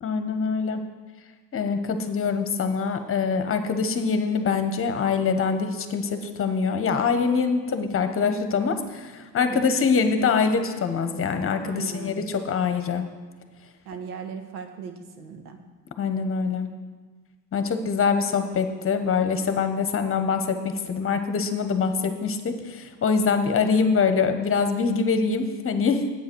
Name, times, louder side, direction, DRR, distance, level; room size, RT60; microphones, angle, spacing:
voice 1, 0.0-0.8 1.5-13.1 16.0-16.7 17.5-26.1, left 5 dB, 30° left, 7 dB, 1.3 m, -24 dB
voice 2, 11.6-12.3 13.8-15.6, right 6 dB, 80° right, 6 dB, 1.6 m, -38 dB
9.4 x 8.6 x 6.3 m, 1.3 s
hypercardioid pair, 85°, 44 cm